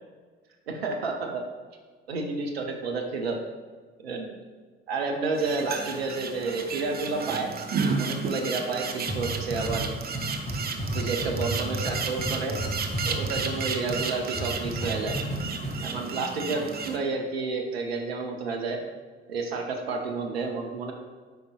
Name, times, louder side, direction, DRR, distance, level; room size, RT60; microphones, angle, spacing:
voice 1, 0.7-1.4 2.1-3.4 4.0-4.3 4.9-7.5 8.0-9.9 10.9-12.6 13.1-15.2 15.8-18.8 19.3-20.9, right 3 dB, 80° right, 2 dB, 0.8 m, -30 dB
sound 1, 5.4-17.0, right 5 dB, 30° right, 0.7 m, -33 dB
sound 2, 9.1-14.0 14.3-15.4 15.6-15.7, right 1 dB, 20° left, 2.0 m, -31 dB
9.1 x 5.3 x 2.4 m, 1.5 s
figure-of-eight pair, 50°, 30 cm